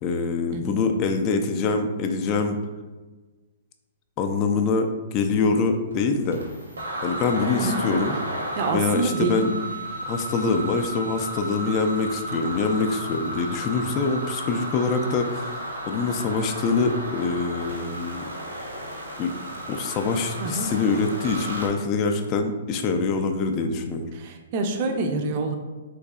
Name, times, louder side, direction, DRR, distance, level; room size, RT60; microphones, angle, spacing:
voice 1, 0.0-2.6 4.2-6.4 7.0-8.2 8.7-9.5 10.1-15.5 15.9-18.2 19.2-19.3 19.7-24.1, left 4 dB, 35° left, 6 dB, 0.3 m, -24 dB
sound 1, 5.9-6.0 6.3-21.7, right 1 dB, 85° right, 0.8 m, -33 dB
voice 2, 8.6-9.5 20.4-20.7 24.1-25.6, right 3 dB, 40° right, 4 dB, 0.4 m, -27 dB
3.8 x 2.7 x 2.3 m, 1.2 s
figure-of-eight pair, 120°, 0 cm